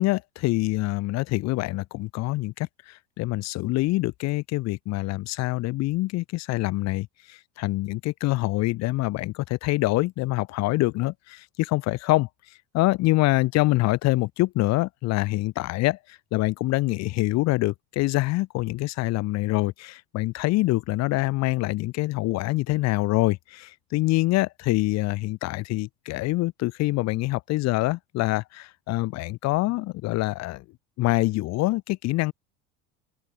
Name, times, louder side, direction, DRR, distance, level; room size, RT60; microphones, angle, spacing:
voice 1, 0.0-2.7 3.2-7.1 7.6-12.3 12.7-16.0 16.3-30.6 31.0-32.3, left 19 dB, 55° left, 1.0 m, -25 dB
open air
supercardioid pair, 125°, 32 cm